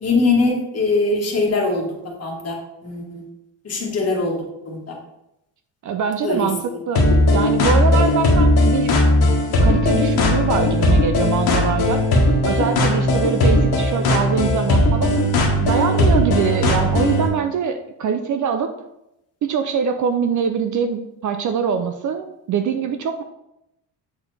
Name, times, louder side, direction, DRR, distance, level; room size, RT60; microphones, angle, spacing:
voice 1, 0.0-1.9 2.2-3.2 3.6-4.4 4.7-5.0 6.2-6.8, left 3 dB, 35° left, 0 dB, 1.7 m, -22 dB
voice 2, 5.8-8.9 9.6-12.0 12.4-15.1 15.6-18.7 19.4-23.2, right 6 dB, 45° right, 8 dB, 0.5 m, -23 dB
sound 1, 6.9-17.3, left 1 dB, 60° left, 1.4 m, -17 dB
7.9 x 4.2 x 3.3 m, 0.88 s
cardioid pair, 110°, 42 cm